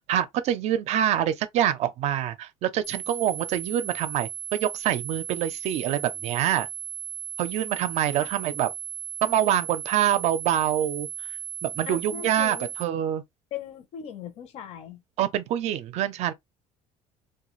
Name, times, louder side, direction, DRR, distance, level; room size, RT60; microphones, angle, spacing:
voice 1, 0.1-6.7 7.4-8.7 9.2-11.1 11.6-13.2 15.2-16.3, right 11 dB, 55° right, 0.4 m, -25 dB
sound 1, 2.8-12.8, right 9 dB, 90° left, 1.1 m, -36 dB
voice 2, 11.9-12.7 13.5-15.0, left 10 dB, 50° left, 0.6 m, -39 dB
2.3 x 2.2 x 3.0 m
cardioid pair, 160°, 14 cm